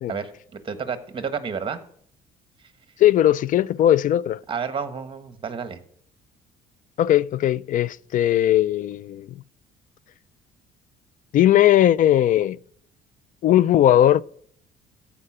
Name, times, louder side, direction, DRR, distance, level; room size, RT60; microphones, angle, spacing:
voice 1, 0.1-1.8 4.5-5.8, right 6 dB, 30° right, 1.4 m, -30 dB
voice 2, 3.0-4.4 7.0-9.3 11.3-12.6 13.4-14.2, left 12 dB, 50° left, 0.4 m, -18 dB
14.5 x 5.0 x 8.7 m
cardioid pair, 110°, 17 cm